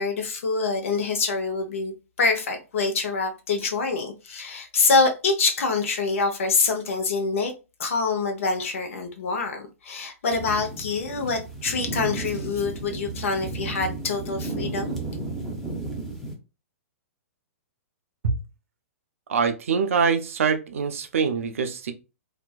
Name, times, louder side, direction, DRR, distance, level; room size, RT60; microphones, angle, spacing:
voice 1, 0.0-7.5 7.8-15.0, left 4 dB, 60° left, 0.7 m, -25 dB
sound 1, 10.3-16.4, right 2 dB, ahead, 0.7 m, -33 dB
voice 2, 19.3-21.9, right 5 dB, 60° right, 0.5 m, -24 dB
2.5 x 2.1 x 2.3 m
figure-of-eight pair, 110°, 8 cm